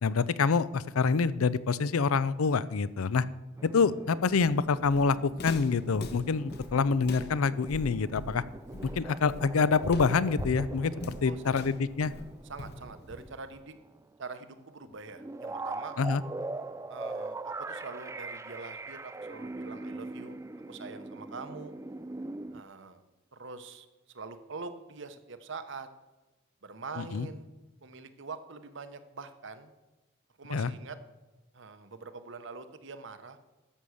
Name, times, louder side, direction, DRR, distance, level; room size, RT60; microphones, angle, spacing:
voice 1, 0.0-3.3 3.6-8.4 8.8-12.1 16.0-16.2 27.0-27.3 30.5-30.7, left 5 dB, 85° left, 17 dB, 0.5 m, -26 dB
sound 1, 3.6-13.8 14.0-14.1 15.0-22.6, right 2 dB, 15° right, 0.3 m, -42 dB
Walk footsteps, 4.3-13.5, left 1 dB, 50° left, 1.1 m, -42 dB
voice 2, 11.2-11.6 12.5-13.7 14.2-15.9 16.9-20.4 20.7-21.8 22.5-23.0 23.3-23.9 24.1-25.9 26.6-27.5 27.8-29.7 30.4-31.0 31.5-33.4, right 4 dB, 60° right, 10 dB, 0.9 m, -44 dB
13.0 x 7.0 x 6.4 m, 1.1 s
head